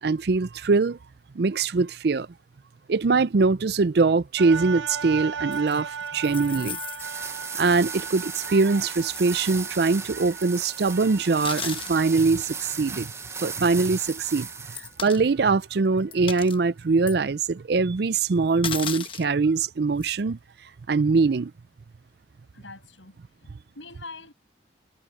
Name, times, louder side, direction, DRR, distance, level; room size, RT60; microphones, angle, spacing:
voice 1, 0.0-1.0 1.3-2.3 2.9-6.8 7.6-13.1 13.4-14.5 15.0-20.4 20.9-21.5, right 4 dB, 55° right, 0.5 m, -22 dB
sound 1, 4.4-14.6 15.2-15.3, right 6 dB, 75° right, 0.8 m, -38 dB
sound 2, 5.5-7.4 8.4-8.5 9.2-9.3 11.2-12.0 13.0-13.1 13.7-13.8 14.7-15.2 15.6-15.7 16.1-16.6 17.1-17.2 18.6-19.3 20.0-20.2, left 7 dB, 25° left, 1.1 m, -35 dB
sound 3, 7.0-15.0, right 5 dB, 15° right, 0.7 m, -36 dB
voice 2, 22.5-23.2 23.4-24.3, left 3 dB, 80° left, 6.9 m, -44 dB
head